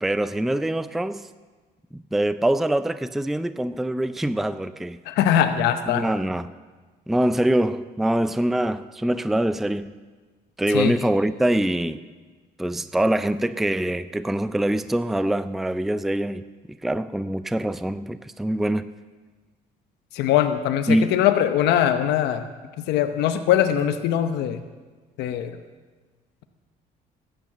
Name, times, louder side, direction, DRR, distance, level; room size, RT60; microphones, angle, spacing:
voice 1, 0.0-1.3 1.9-5.0 5.9-6.5 7.1-9.9 10.6-12.0 12.6-16.4 16.8-18.9 20.9-21.1, right 1 dB, ahead, 0.4 m, -24 dB
voice 2, 5.1-6.0 10.7-10.9 20.1-22.4 22.8-24.6 25.2-25.6, left 10 dB, 85° left, 0.8 m, -21 dB
13.5 x 9.1 x 7.3 m
cardioid pair, 110°, 17 cm